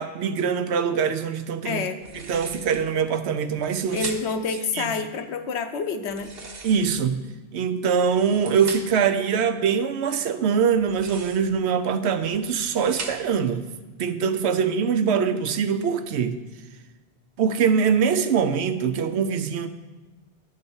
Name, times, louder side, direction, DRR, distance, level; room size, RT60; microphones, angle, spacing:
voice 1, 0.0-1.8 2.1-4.1 4.7-4.9 6.6-7.2 7.5-13.7 14.0-16.4 17.4-19.7, right 6 dB, 80° right, 9 dB, 0.9 m, -23 dB
voice 2, 1.6-2.0 3.9-6.3, left 5 dB, 85° left, 8 dB, 1.0 m, -28 dB
sound 1, 2.0-2.9 3.5-4.5 6.1-7.2 8.0-9.1 10.8-11.6 12.2-13.5, right 3 dB, 65° right, 1.2 m, -40 dB
10.5 x 4.0 x 7.1 m, 1.3 s
omnidirectional pair, 1.1 m